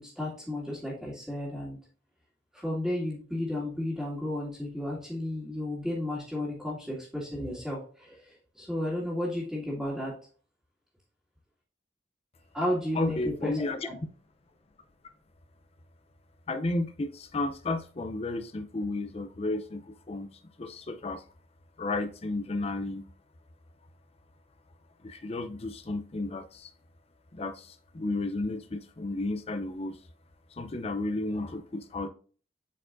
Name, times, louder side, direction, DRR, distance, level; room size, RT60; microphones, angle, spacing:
voice 1, 0.2-1.8 2.5-10.2 12.5-14.0, left 1 dB, ahead, -9 dB, 2.1 m, -33 dB
voice 2, 12.9-13.9 16.5-20.3 20.6-21.2 21.8-23.1 25.0-26.7 27.3-30.0 30.5-32.1, left 2 dB, 35° left, 8 dB, 0.5 m, -33 dB
8.3 x 4.6 x 2.5 m, 0.41 s
head